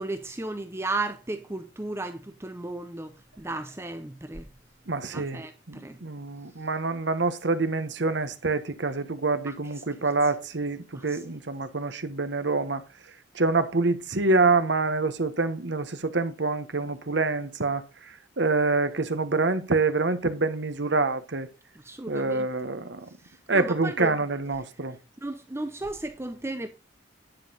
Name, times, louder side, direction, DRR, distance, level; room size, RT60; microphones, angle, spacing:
voice 1, 0.0-4.5 5.1-6.0 9.4-9.5 10.0-10.1 10.9-11.2 21.7-22.5 23.2-24.2 25.2-26.7, right 2 dB, 15° right, 0.7 m, -35 dB
voice 2, 4.9-5.4 5.7-12.8 13.3-17.8 18.4-21.5 22.1-23.0 23.5-25.0, right 3 dB, 60° right, 1.2 m, -26 dB
10.5 x 5.4 x 5.5 m
head